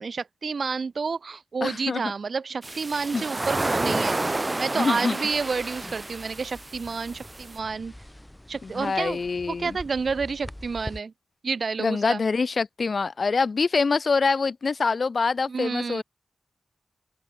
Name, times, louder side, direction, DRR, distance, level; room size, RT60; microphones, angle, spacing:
voice 1, 0.0-7.9 8.5-9.2 9.5-11.1 11.4-12.2 15.5-16.0, right 5 dB, 60° right, 0.8 m, -30 dB
voice 2, 1.6-2.0 3.1-3.2 4.7-5.2 8.6-9.8 11.8-16.0, left 4 dB, 55° left, 0.6 m, -25 dB
sound 1, 2.6-7.6, right 2 dB, 25° right, 0.5 m, -30 dB
sound 2, 5.3-11.0, left 1 dB, 10° left, 4.5 m, -44 dB
open air
wide cardioid pair, 115°, 0 cm